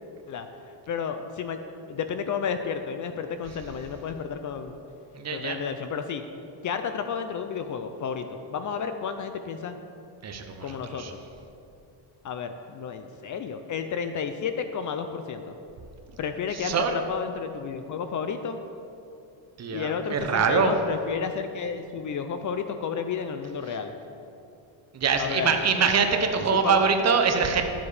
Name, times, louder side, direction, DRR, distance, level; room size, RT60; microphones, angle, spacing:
voice 1, 0.9-1.6 1.9-4.8 5.3-6.2 6.6-9.8 10.6-11.0 12.2-15.5 16.2-18.6 19.7-23.9 25.2-25.6 26.0-26.9, left 6 dB, 40° left, 8 dB, 0.5 m, -32 dB
voice 2, 5.2-5.6 10.2-11.1 16.6-16.9 19.6-20.7 24.9-27.6, right 5 dB, 35° right, 5 dB, 0.8 m, -24 dB
12.0 x 7.1 x 4.9 m, 2.7 s
cardioid pair, 145°, 47 cm